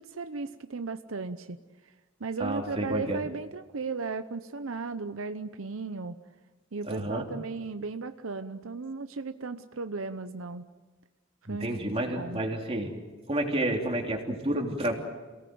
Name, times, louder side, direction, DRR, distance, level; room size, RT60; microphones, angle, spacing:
voice 1, 0.0-1.6 2.2-6.2 6.7-10.7 11.5-11.7 12.1-12.4, right 4 dB, 80° right, 10 dB, 0.8 m, -35 dB
voice 2, 2.4-3.2 6.8-7.3 11.4-12.9 13.3-14.9, right 1 dB, 30° right, 1 dB, 3.4 m, -30 dB
28.5 x 18.0 x 7.8 m, 1.3 s
head